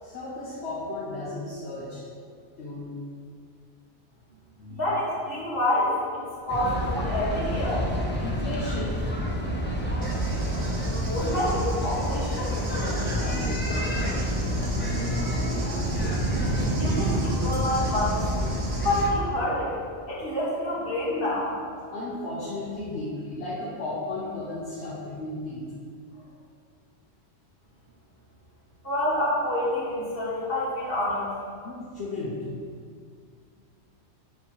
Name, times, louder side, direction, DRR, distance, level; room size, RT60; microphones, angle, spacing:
voice 1, 0.0-2.0 2.6-2.9 4.6-4.8 8.2-9.0 13.0-14.1 21.9-25.6 26.1-26.3 29.1-29.2 31.6-32.5, left 2 dB, 70° left, -7 dB, 1.2 m, -35 dB
voice 2, 4.7-7.9 11.0-12.6 16.8-18.2 18.7-19.8 20.1-21.5 28.8-31.3, left 1 dB, 50° left, -7 dB, 1.9 m, -27 dB
sound 1, 6.5-19.1, equal, 10° left, 0.6 m, -28 dB
Cricket / Thunder, 10.0-19.0, right 2 dB, 75° right, 1.2 m, -34 dB
7.3 x 3.1 x 5.5 m, 2.1 s
omnidirectional pair, 1.2 m